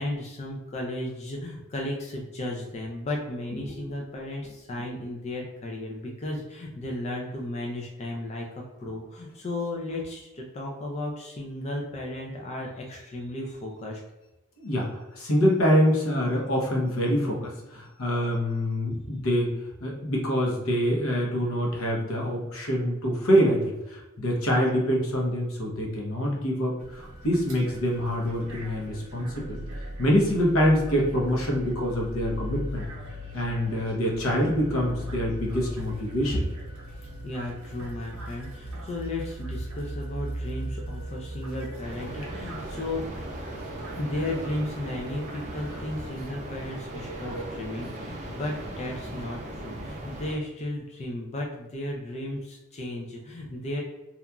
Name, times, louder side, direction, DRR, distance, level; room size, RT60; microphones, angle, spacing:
voice 1, 0.0-14.0 36.3-36.4 36.9-43.0 43.9-53.8, left 1 dB, 30° left, -1 dB, 0.3 m, -34 dB
voice 2, 14.6-19.5 19.8-23.6 23.9-29.6 30.0-32.8 33.3-36.5 41.1-41.8 42.1-42.4 43.5-44.0 45.1-45.2 47.1-47.4, equal, 75° left, -2 dB, 0.8 m, -26 dB
sound 1, 26.8-46.1, equal, 80° right, 0.6 m, -39 dB
sound 2, 41.8-50.4, right 1 dB, 35° right, 0.4 m, -38 dB
2.8 x 2.4 x 2.2 m, 1.0 s
head